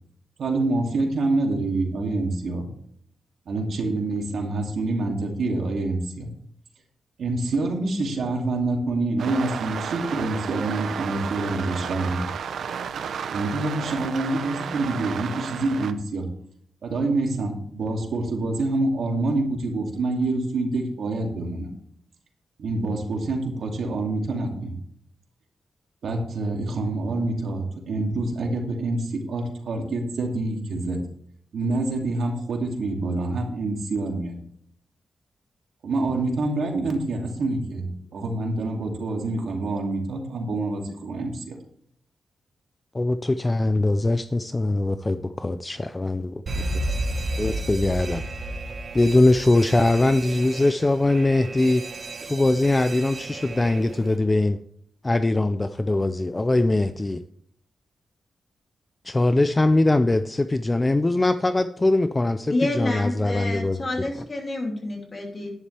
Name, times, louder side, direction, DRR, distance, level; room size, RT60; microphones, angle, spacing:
voice 1, 0.4-2.7 3.5-6.3 7.2-12.3 13.3-16.3 16.8-21.7 22.6-24.7 26.0-31.0 31.5-34.4 35.8-41.6, right 2 dB, 75° right, 1 dB, 2.6 m, -26 dB
sound 1, 9.2-15.9, right 7 dB, 90° right, 0.7 m, -32 dB
voice 2, 42.9-46.4 47.4-48.2 48.9-51.8 52.2-54.6 55.0-57.2 59.0-63.8, left 2 dB, 20° left, 11 dB, 0.4 m, -21 dB
Alarm, 46.5-54.2, right 1 dB, 45° right, 1.1 m, -32 dB
voice 3, 62.5-65.5, left 2 dB, 40° left, 1 dB, 2.9 m, -28 dB
11.0 x 10.5 x 3.4 m, 0.66 s
wide cardioid pair, 130°, 0 cm